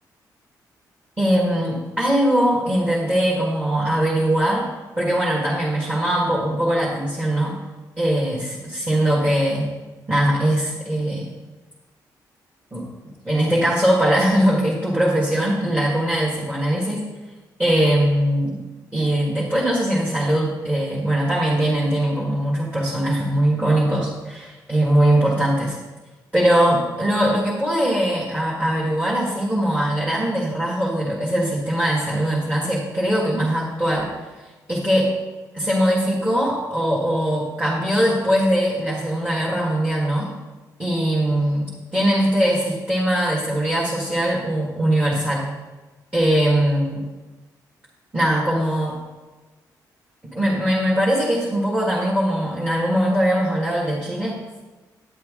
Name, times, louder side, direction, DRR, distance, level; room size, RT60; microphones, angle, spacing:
voice 1, 1.2-4.6 5.0-7.6 8.0-9.7 10.1-11.3 12.7-12.9 13.2-17.1 17.6-18.6 18.9-25.8 26.3-34.1 34.7-35.1 35.5-40.3 40.8-45.5 46.1-47.1 48.1-49.0 50.3-54.6, right 1 dB, 10° right, -5 dB, 1.7 m, -21 dB
10.0 x 9.3 x 3.7 m, 1.2 s
cardioid pair, 165°, 7 cm